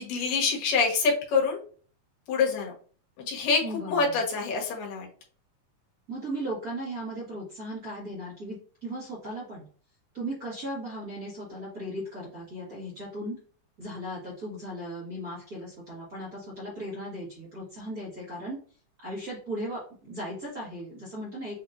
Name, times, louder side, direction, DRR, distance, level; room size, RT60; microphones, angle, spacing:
voice 1, 0.0-1.6 2.3-2.7 3.2-5.1, left 4 dB, 85° left, -1 dB, 3.0 m, -26 dB
voice 2, 3.6-4.2 6.1-9.6 10.1-13.4 13.8-18.6 19.0-21.6, right 1 dB, 35° right, -5 dB, 1.6 m, -37 dB
7.1 x 3.0 x 2.5 m, 0.42 s
omnidirectional pair, 3.8 m